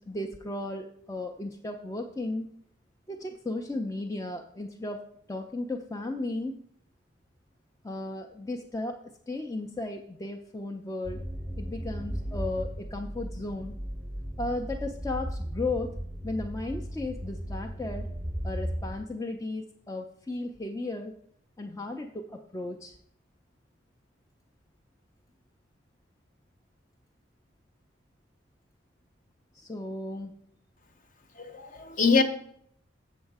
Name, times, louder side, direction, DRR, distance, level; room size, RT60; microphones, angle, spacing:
voice 1, 0.0-2.5 3.1-6.6 7.8-9.0 9.3-11.2 11.6-13.7 14.4-16.0 16.2-18.1 18.4-21.1 21.6-23.0 29.5-30.4, left 2 dB, 15° left, 0.4 m, -35 dB
sound 1, 11.0-19.0, equal, 5° right, 0.8 m, -36 dB
voice 2, 31.4-32.2, left 4 dB, 40° left, 0.8 m, -24 dB
7.4 x 7.1 x 4.7 m
head